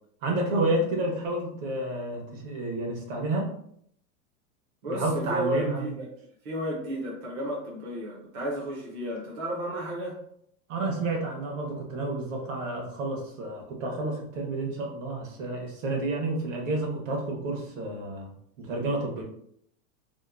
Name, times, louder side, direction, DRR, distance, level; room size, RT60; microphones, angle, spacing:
voice 1, 0.2-3.5 4.9-6.0 10.7-18.3 18.6-19.2, right 2 dB, 65° right, 0 dB, 0.9 m, -30 dB
voice 2, 4.8-6.1 6.4-10.2, right 1 dB, 35° right, -4 dB, 0.5 m, -33 dB
2.8 x 2.0 x 2.3 m, 0.68 s
supercardioid pair, 180°, 42 cm